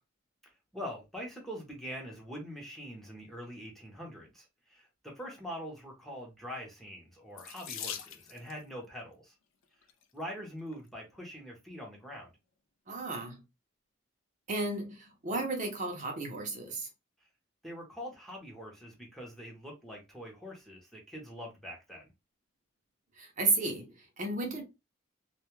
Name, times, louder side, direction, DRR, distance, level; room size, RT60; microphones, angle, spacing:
voice 1, 0.7-9.3 10.1-12.3 17.6-22.1, equal, ahead, 0.7 m, -44 dB
Water tap faucet / Sink (filling or washing), 7.4-8.6 9.6-10.0 10.7-10.8 11.2-11.3, left 9 dB, 80° left, 0.4 m, -42 dB
voice 2, 12.9-13.4 14.5-16.9 23.2-24.6, right 3 dB, 40° right, 0.6 m, -33 dB
2.2 x 2.1 x 3.0 m
head